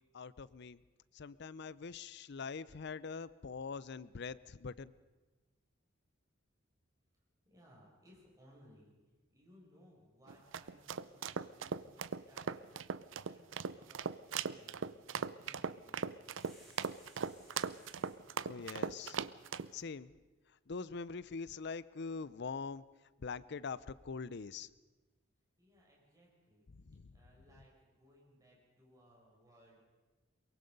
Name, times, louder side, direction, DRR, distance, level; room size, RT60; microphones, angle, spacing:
voice 1, 0.1-0.8 1.1-4.9 18.4-19.2 19.7-20.1 20.7-22.8 23.2-24.7 26.9-27.0, left 5 dB, 60° left, 18 dB, 0.6 m, -43 dB
voice 2, 7.4-8.9 9.3-12.7 13.2-16.3 25.6-26.6 27.1-29.8, equal, 20° right, -3 dB, 6.6 m, -64 dB
sound 1, 10.3-19.7, right 6 dB, 70° right, 0.6 m, -39 dB
sound 2, 16.4-18.2, equal, ahead, 7.7 m, -62 dB
23.0 x 22.5 x 5.3 m, 1.2 s
head